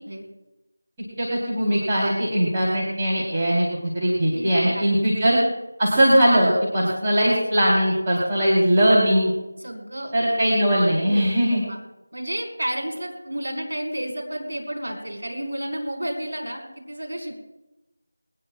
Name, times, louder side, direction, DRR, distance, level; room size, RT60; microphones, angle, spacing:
voice 1, 1.2-5.4 5.8-9.3 10.1-11.6, equal, 20° right, -8 dB, 3.9 m, -20 dB
voice 2, 4.3-4.9 9.6-10.1 11.0-11.8 12.1-17.4, right 1 dB, 85° right, 1 dB, 5.1 m, -31 dB
21.5 x 19.5 x 2.5 m, 1.0 s
figure-of-eight pair, 170°, 0 cm